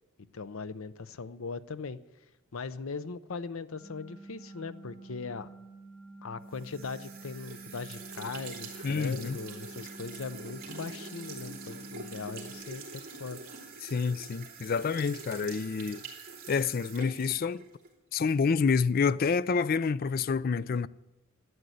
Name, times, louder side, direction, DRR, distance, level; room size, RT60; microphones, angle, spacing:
voice 1, 0.3-2.0 2.5-5.5 6.2-13.4, left 4 dB, 80° left, 0.7 m, -39 dB
sound 1, 3.7-12.6, right 2 dB, 20° left, 6.4 m, -49 dB
sound 2, 6.5-17.9, right 4 dB, 45° right, 3.0 m, -45 dB
voice 2, 8.8-9.4 13.8-16.0 16.5-17.6 18.1-20.9, left 5 dB, 45° left, 0.4 m, -28 dB
12.5 x 9.6 x 7.9 m
head